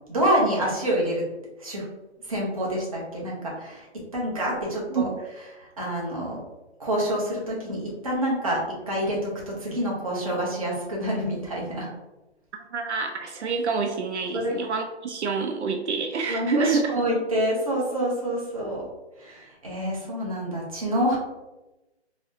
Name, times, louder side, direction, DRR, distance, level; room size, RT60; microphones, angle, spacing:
voice 1, 0.1-1.3 1.6-1.8 2.2-3.9 4.1-5.1 5.5-6.4 6.8-11.9 14.3-14.6 16.3-18.9 19.2-21.2, right 1 dB, 30° right, -4 dB, 0.8 m, -27 dB
voice 2, 12.7-16.9, right 4 dB, 75° right, 4 dB, 0.5 m, -27 dB
4.0 x 2.1 x 2.5 m, 1.0 s
hypercardioid pair, 170°, 34 cm